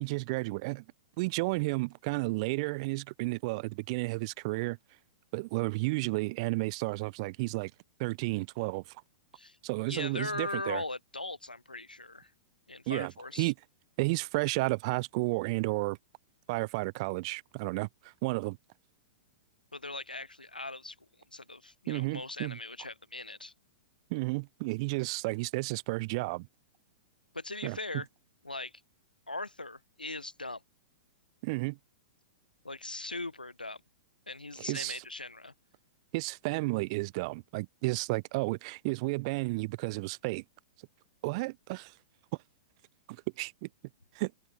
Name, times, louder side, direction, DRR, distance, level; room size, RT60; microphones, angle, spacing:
voice 1, 0.0-0.8 1.2-4.8 5.3-7.7 8.0-9.0 9.6-10.8 12.9-13.5 14.0-16.0 16.5-18.6 21.9-22.6 24.1-26.5 27.6-27.8 31.4-31.8 34.6-35.0 36.1-40.4 41.2-41.9 43.1-43.7 44.1-44.3, right 25 dB, 40° right, 0.5 m, -32 dB
voice 2, 9.9-12.3 12.7-13.5 19.7-21.0 21.3-23.5 27.3-28.1 28.4-28.7 29.3-30.6 32.6-33.8 34.3-35.5, left 2 dB, 90° left, 0.8 m, -39 dB
open air
figure-of-eight pair, 105°, 5 cm